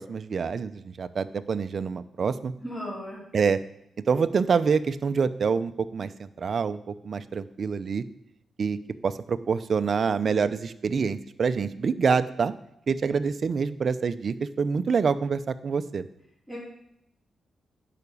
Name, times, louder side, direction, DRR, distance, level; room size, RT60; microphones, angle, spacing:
voice 1, 0.0-2.5 3.3-3.6 4.1-6.1 6.4-8.0 8.6-8.8 9.0-12.5 12.9-16.1, right 5 dB, 50° right, 13 dB, 0.7 m, -26 dB
voice 2, 2.6-3.2 16.5-16.6, equal, 10° left, -5 dB, 4.3 m, -36 dB
11.0 x 5.9 x 8.5 m, 0.77 s
cardioid pair, 115°, 0 cm